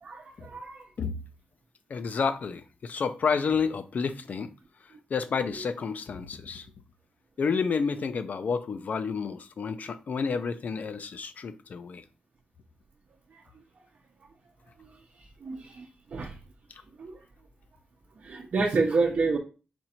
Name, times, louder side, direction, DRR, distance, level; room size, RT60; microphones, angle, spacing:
voice 1, 0.0-0.9 14.8-14.9 15.4-15.9 16.1-16.3 17.0-17.2 18.2-19.4, right 4 dB, 60° right, 0.7 m, -28 dB
voice 2, 1.9-4.5 5.1-6.7 7.4-12.0, left 5 dB, 60° left, 0.5 m, -30 dB
4.3 x 2.6 x 4.3 m
wide cardioid pair, 95°, 3 cm